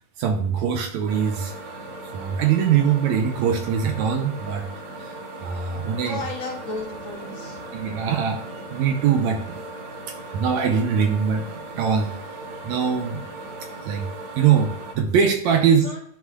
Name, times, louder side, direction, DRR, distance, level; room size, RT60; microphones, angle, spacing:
voice 1, 0.2-1.5 2.1-4.7 5.0-5.2 5.4-6.2 7.7-8.4 8.7-9.6 10.3-11.4 11.8-12.1 12.6-13.2 13.9-14.0 14.4-15.8, right 7 dB, 75° right, 4 dB, 1.8 m, -22 dB
sound 1, 1.1-14.9, right 2 dB, 55° right, 1.7 m, -38 dB
voice 2, 6.0-7.6 15.4-16.0, left 2 dB, 60° left, -2 dB, 2.6 m, -34 dB
11.0 x 4.2 x 2.3 m, 0.70 s
omnidirectional pair, 3.5 m